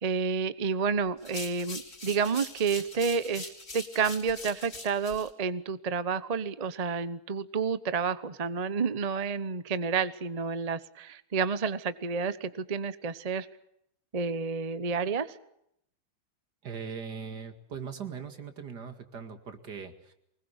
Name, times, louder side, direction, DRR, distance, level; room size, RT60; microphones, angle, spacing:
voice 1, 0.0-13.5 14.1-15.4, right 5 dB, 40° right, 14 dB, 0.6 m, -30 dB
sound 1, 1.2-5.3, left 2 dB, 40° left, 5.4 m, -43 dB
voice 2, 16.6-20.1, right 6 dB, 55° right, 8 dB, 2.7 m, -40 dB
24.0 x 20.5 x 8.0 m, 0.75 s
omnidirectional pair, 2.2 m